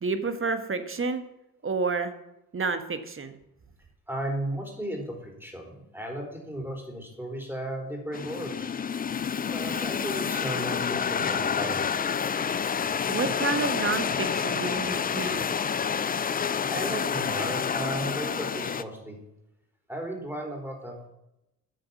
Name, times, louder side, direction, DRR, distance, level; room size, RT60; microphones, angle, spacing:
voice 1, 0.0-1.2 1.6-2.1 2.5-3.3 13.1-15.5, right 4 dB, 25° right, 9 dB, 1.4 m, -29 dB
voice 2, 4.1-8.7 9.5-12.0 16.7-19.2 19.9-21.1, right 1 dB, 5° right, 1 dB, 4.3 m, -35 dB
sound 1, 8.1-18.8, left 7 dB, 20° left, 0.5 m, -28 dB
13.5 x 7.7 x 6.1 m, 0.88 s
figure-of-eight pair, 45°, 48 cm